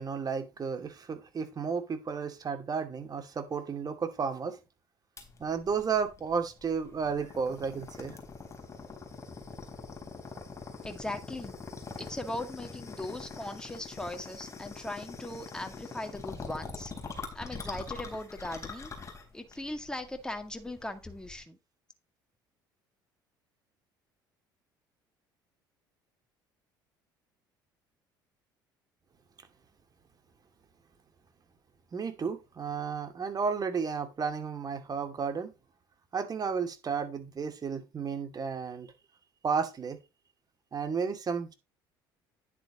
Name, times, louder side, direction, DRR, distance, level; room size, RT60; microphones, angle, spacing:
voice 1, 0.0-4.6 5.4-8.2 31.9-35.5 36.1-38.9 39.4-40.0 40.7-41.5, right 6 dB, 35° right, 2.4 m, -33 dB
sound 1, 5.2-21.4, left 4 dB, 25° left, 4.1 m, -44 dB
voice 2, 10.8-11.5 12.0-16.9 17.3-18.9 19.3-21.6, left 1 dB, 5° left, 2.0 m, -39 dB
10.0 x 8.3 x 3.0 m
hypercardioid pair, 65°, 11 cm